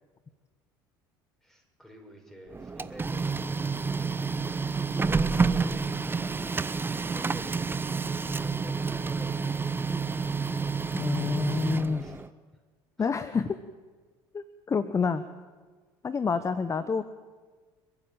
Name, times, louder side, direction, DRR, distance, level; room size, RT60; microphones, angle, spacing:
voice 1, 1.4-6.8 7.1-7.6 8.3-10.7 11.1-12.3 13.0-13.1 16.3-16.6, equal, 5° left, 2 dB, 6.0 m, -48 dB
Printer, 2.5-12.3, right 4 dB, 20° right, 0.8 m, -29 dB
voice 2, 10.9-12.0 13.0-13.6 14.3-15.2 16.0-17.0, left 5 dB, 25° left, 14 dB, 0.9 m, -28 dB
29.5 x 10.0 x 9.0 m, 1.4 s
hypercardioid pair, 70°, 12 cm